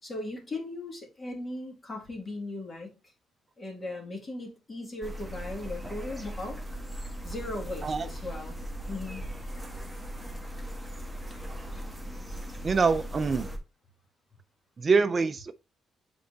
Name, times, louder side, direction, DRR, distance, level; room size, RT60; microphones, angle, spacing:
voice 1, 0.0-2.9 3.6-6.8 7.2-8.6 8.9-9.2, left 2 dB, 30° left, 2.3 m, -38 dB
sound 1, 5.0-13.6, equal, ahead, 1.6 m, -38 dB
voice 2, 12.6-13.5 14.8-15.5, right 4 dB, 35° right, 0.4 m, -25 dB
7.6 x 4.5 x 2.8 m
cardioid pair, 90°, 0 cm